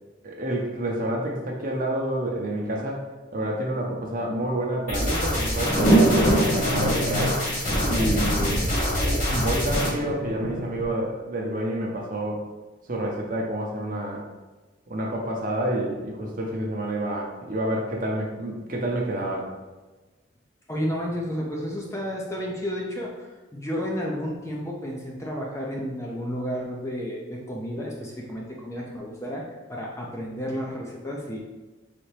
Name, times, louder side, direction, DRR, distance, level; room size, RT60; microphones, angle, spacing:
voice 1, 0.2-3.0 3.3-6.2 6.5-7.4 7.8-8.6 9.3-12.4 12.9-14.2 14.9-19.5, right 1 dB, 45° right, 0 dB, 0.8 m, -28 dB
sound 1, 4.9-9.9, left 1 dB, 40° left, 1.4 m, -26 dB
sound 2, 5.3-10.9, right 1 dB, 90° left, 1.1 m, -25 dB
voice 2, 20.7-31.4, equal, 15° left, -2 dB, 0.5 m, -32 dB
4.2 x 3.5 x 3.3 m, 1.2 s
head